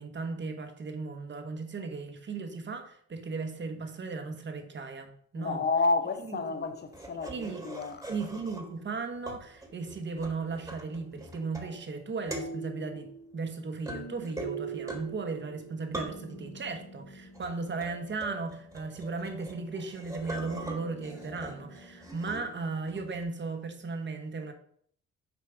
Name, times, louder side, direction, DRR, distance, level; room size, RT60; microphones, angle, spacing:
voice 1, 0.0-5.6 6.3-6.4 7.3-7.6 8.1-24.5, right 4 dB, 40° right, 1.3 m, -36 dB
voice 2, 5.3-8.0, left 3 dB, 35° left, 0.9 m, -30 dB
sound 1, 6.9-8.9 9.3-12.0 12.3-23.2, right 2 dB, 10° right, 1.7 m, -42 dB
7.0 x 4.2 x 5.1 m
cardioid pair, 90°, 30 cm